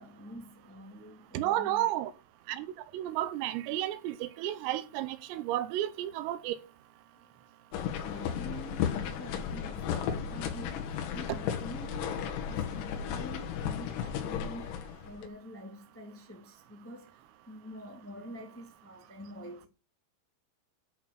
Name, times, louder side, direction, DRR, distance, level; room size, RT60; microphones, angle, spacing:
voice 1, 0.0-1.8 7.1-7.4 7.6-19.7, equal, 15° left, 0.4 m, -47 dB
voice 2, 1.3-2.1 2.5-2.7 2.9-6.6, right 13 dB, 85° right, 3.5 m, -32 dB
sound 1, 7.7-15.3, left 8 dB, 85° left, 4.4 m, -34 dB
11.0 x 4.5 x 6.6 m
omnidirectional pair, 6.0 m